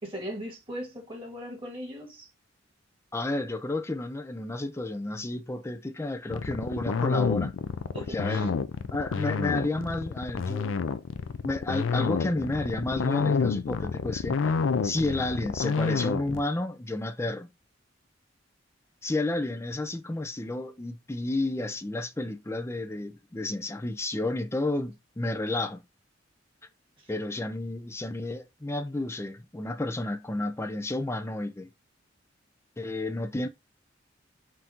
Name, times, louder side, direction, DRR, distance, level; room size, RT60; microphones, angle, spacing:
voice 1, 0.0-2.3 7.9-8.5 27.0-27.1, equal, 25° right, 2.1 m, -39 dB
voice 2, 3.1-7.5 8.0-8.5 8.9-10.8 11.4-14.5 14.8-17.5 19.0-25.8 27.1-31.7 32.8-33.5, left 2 dB, 15° left, 0.5 m, -31 dB
sound 1, 6.3-16.4, left 5 dB, 75° left, 0.4 m, -28 dB
5.5 x 2.7 x 2.9 m
head